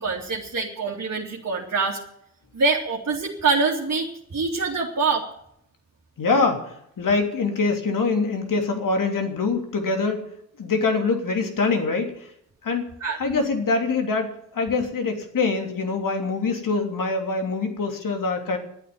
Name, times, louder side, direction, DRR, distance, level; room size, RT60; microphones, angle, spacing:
voice 1, 0.0-2.0 2.5-5.3 13.0-13.2, right 4 dB, 50° right, -3 dB, 2.8 m, -25 dB
voice 2, 6.2-10.2 10.6-12.3 12.6-12.9 13.2-18.6, left 4 dB, 65° left, 4 dB, 3.2 m, -24 dB
11.5 x 9.3 x 9.3 m, 0.73 s
supercardioid pair, 50°, 35 cm